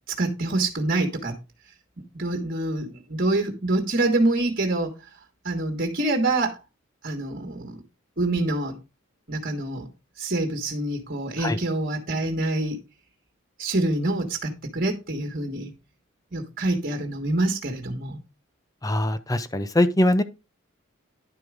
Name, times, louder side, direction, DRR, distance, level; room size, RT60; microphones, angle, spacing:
voice 1, 0.1-1.4 2.1-4.9 5.4-6.6 7.0-7.8 8.2-8.8 9.3-9.9 10.2-12.8 13.6-15.7 16.3-18.2, right 2 dB, 45° right, 1.5 m, -26 dB
voice 2, 18.8-20.2, left 1 dB, 15° left, 0.6 m, -22 dB
10.5 x 4.7 x 4.9 m
head